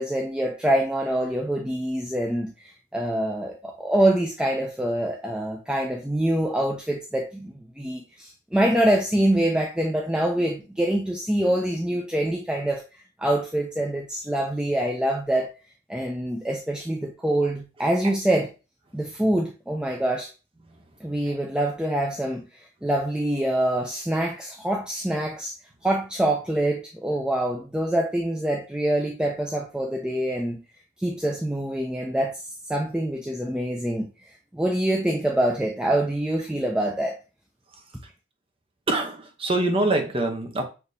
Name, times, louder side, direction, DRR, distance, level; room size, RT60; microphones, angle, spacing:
voice 1, 0.0-12.8 13.2-15.5 15.9-18.5 18.9-20.3 21.0-22.4 22.8-25.5 25.8-30.6 31.0-32.4 32.7-34.1 34.5-37.2, right 1 dB, 5° right, 0.4 m, -25 dB
voice 2, 38.9-40.6, right 2 dB, 25° right, 0.8 m, -25 dB
6.5 x 2.8 x 2.7 m
head